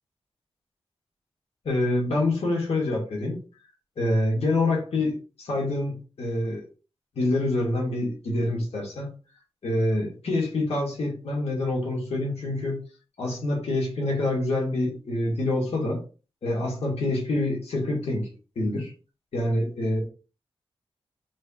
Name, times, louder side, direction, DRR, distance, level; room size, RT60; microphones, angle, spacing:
voice 1, 1.6-3.4 4.0-6.6 7.1-9.1 9.6-12.8 13.2-16.0 16.4-18.3 18.5-18.9 19.3-20.0, left 2 dB, 85° left, -2 dB, 1.6 m, -26 dB
6.1 x 3.0 x 2.4 m, 0.35 s
wide cardioid pair, 145°, 10 cm